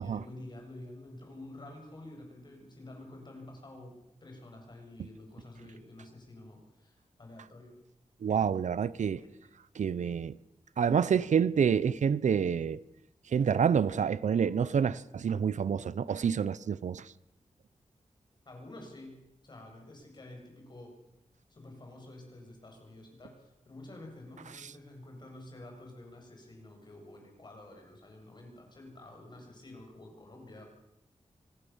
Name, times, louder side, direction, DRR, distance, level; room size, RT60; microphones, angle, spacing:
voice 1, 0.0-3.9 4.2-7.7 9.0-9.3 18.5-21.0 21.5-30.6, left 1 dB, 40° left, 7.3 m, -49 dB
voice 2, 8.2-9.2 9.8-10.3 10.8-12.8 13.3-17.0, right 7 dB, 90° right, 0.7 m, -28 dB
25.5 x 17.5 x 7.2 m
wide cardioid pair, 165°, 12 cm